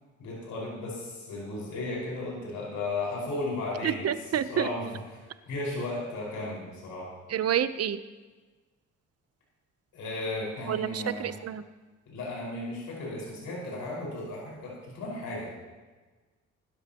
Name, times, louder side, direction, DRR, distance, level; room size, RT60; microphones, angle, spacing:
voice 1, 0.2-4.0 4.5-4.9 5.5-7.1 9.9-11.4 12.1-15.5, left 2 dB, 80° left, -4 dB, 5.4 m, -35 dB
voice 2, 3.8-4.7 7.3-8.0 10.7-11.6, right 9 dB, 55° right, 12 dB, 0.9 m, -28 dB
21.5 x 12.0 x 3.0 m, 1.3 s
cardioid pair, 90°, 30 cm